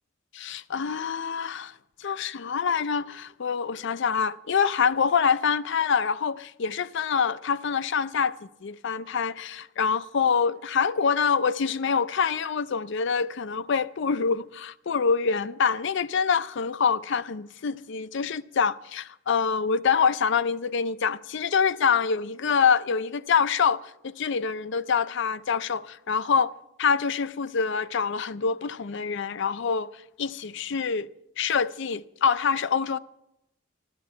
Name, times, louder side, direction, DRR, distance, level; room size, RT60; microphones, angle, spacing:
voice 1, 0.3-1.7 2.0-8.4 8.6-26.5 26.8-29.9 30.2-31.1 31.4-33.0, left 6 dB, 65° left, 0.5 m, -25 dB
14.0 x 12.5 x 5.7 m
head